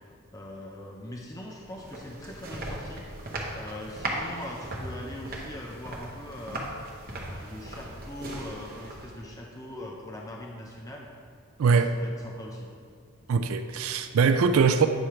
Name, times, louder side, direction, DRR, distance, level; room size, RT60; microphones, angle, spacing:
voice 1, 0.3-3.0 3.5-6.7 7.3-11.1 11.7-12.7, left 1 dB, 15° left, -1 dB, 0.5 m, -41 dB
sound 1, 1.5-9.3, right 1 dB, 45° right, 1.0 m, -38 dB
voice 2, 11.6-11.9 13.3-14.9, right 5 dB, 80° right, 8 dB, 0.4 m, -22 dB
8.7 x 3.2 x 5.6 m, 2.1 s
head